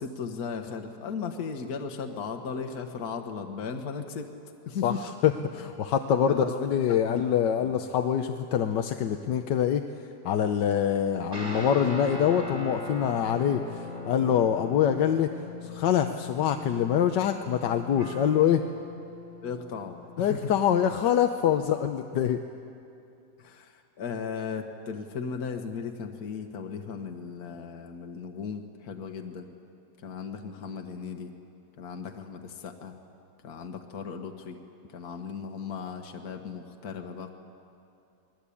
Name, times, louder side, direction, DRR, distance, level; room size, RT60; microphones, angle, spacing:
voice 1, 0.0-4.3 4.6-5.0 6.3-7.7 19.4-20.5 23.4-29.5 30.0-31.3 31.8-32.9 33.4-34.6 34.9-37.3, left 5 dB, 60° left, 4 dB, 1.8 m, -36 dB
voice 2, 5.2-9.8 10.2-15.3 15.6-18.6 20.2-22.4, left 9 dB, 90° left, 6 dB, 1.5 m, -25 dB
sound 1, 11.3-21.0, left 2 dB, 45° right, 4.5 m, -40 dB
29.0 x 20.5 x 8.5 m, 2.7 s
omnidirectional pair, 1.8 m